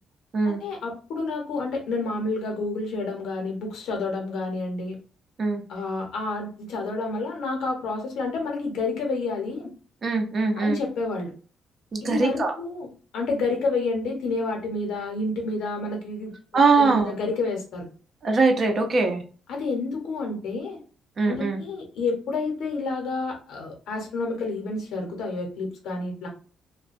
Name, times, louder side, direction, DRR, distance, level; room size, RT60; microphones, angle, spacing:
voice 1, 0.4-5.0 5.7-9.7 10.6-11.3 12.0-12.9 13.1-16.3 16.8-17.9 19.5-20.8 21.3-26.3, left 3 dB, 85° left, 1 dB, 0.9 m, -29 dB
voice 2, 10.0-10.8 11.9-12.5 16.5-17.1 18.2-19.2 21.2-21.6, right 3 dB, 45° right, 4 dB, 0.6 m, -22 dB
2.2 x 2.2 x 2.5 m, 0.39 s
cardioid pair, 90°, 0 cm